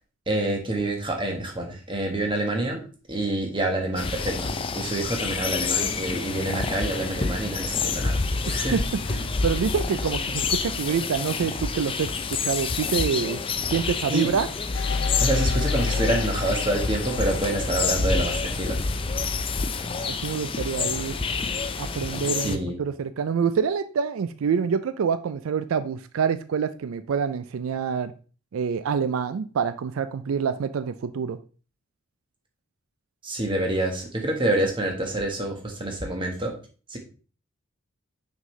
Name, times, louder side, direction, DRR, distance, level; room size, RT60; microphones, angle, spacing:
voice 1, 0.3-2.8 3.1-8.2 8.5-8.8 14.1-14.3 15.2-18.8 22.4-22.7 33.2-36.6 36.9-37.0, right 1 dB, 25° right, 2 dB, 1.3 m, -27 dB
sound 1, 4.0-22.6, left 4 dB, 25° left, 0.4 m, -28 dB
voice 2, 8.5-8.8 9.1-13.4 13.7-14.5 20.0-21.2 21.8-28.1 28.5-31.4, right 6 dB, 80° right, 12 dB, 0.4 m, -27 dB
sound 2, 14.7-18.5, left 4 dB, 75° left, 0.6 m, -28 dB
6.2 x 5.4 x 3.2 m, 0.38 s
head